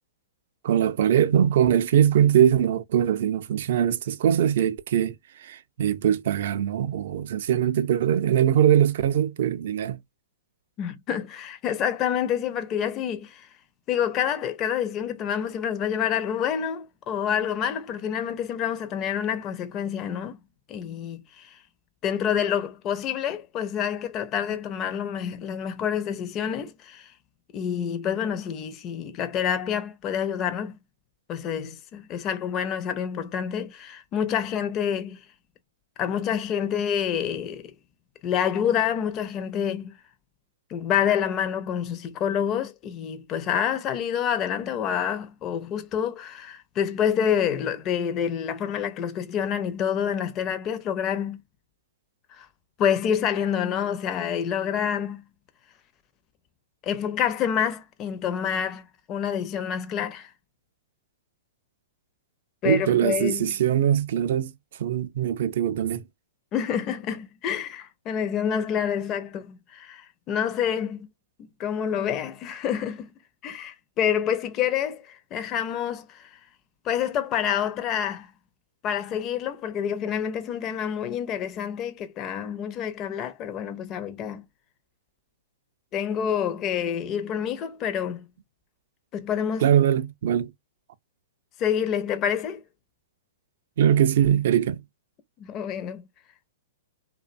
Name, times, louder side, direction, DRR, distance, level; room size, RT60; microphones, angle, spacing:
voice 1, 0.6-5.1 5.4-10.0 62.6-64.5 64.8-66.0 89.6-90.5 93.8-94.8, right 10 dB, 65° right, 0.4 m, -22 dB
voice 2, 10.8-13.5 13.9-20.4 20.7-21.6 22.0-27.1 27.5-30.8 31.3-35.2 36.0-37.7 38.2-40.0 40.7-51.4 52.3-52.5 52.8-55.2 56.8-60.3 62.6-63.5 66.5-71.1 71.6-73.1 73.4-76.4 76.8-78.3 78.8-84.4 85.9-88.2 89.1-89.7 91.6-92.6 95.4-96.0, left 8 dB, 30° left, 0.4 m, -27 dB
2.5 x 2.1 x 2.4 m
hypercardioid pair, 125°, 0 cm